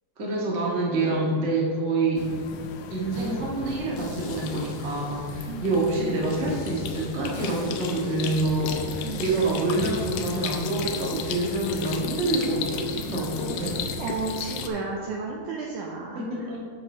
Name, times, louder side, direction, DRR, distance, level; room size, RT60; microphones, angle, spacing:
voice 1, 0.2-2.3 2.9-13.8 16.1-16.7, right 2 dB, 60° right, -4 dB, 0.7 m, -27 dB
sound 1, 2.2-14.7, left 5 dB, 80° left, 1.9 m, -34 dB
sound 2, 3.1-3.4 3.7-5.8 6.3-9.7, left 2 dB, 60° left, 1.2 m, -42 dB
voice 2, 5.5-5.8 9.0-9.2 14.0-16.5, right 4 dB, 85° right, -1 dB, 1.8 m, -33 dB
8.0 x 7.0 x 5.0 m, 2.3 s
omnidirectional pair, 4.5 m